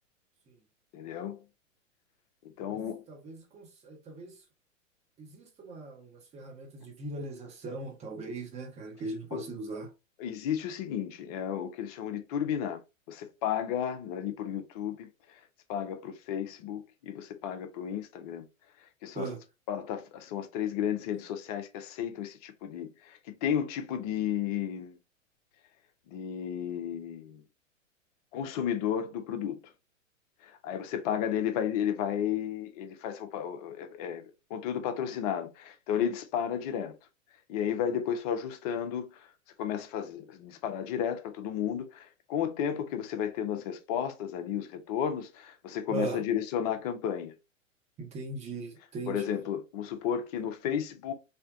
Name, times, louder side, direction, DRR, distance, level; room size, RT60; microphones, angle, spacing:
voice 1, 0.9-1.4 2.6-3.0 9.3-9.4 10.2-12.8 13.1-15.1 15.7-18.4 19.0-19.3 19.7-25.0 26.1-27.4 28.3-29.6 30.4-34.2 34.5-36.9 37.5-39.3 39.6-47.3 49.1-51.1, left 9 dB, 30° left, 0.5 m, -33 dB
voice 2, 3.1-4.3 5.2-9.9 19.1-19.4 45.9-46.2 48.0-49.4, right 3 dB, 15° right, 0.7 m, -39 dB
3.3 x 2.7 x 2.5 m
figure-of-eight pair, 110°, 39 cm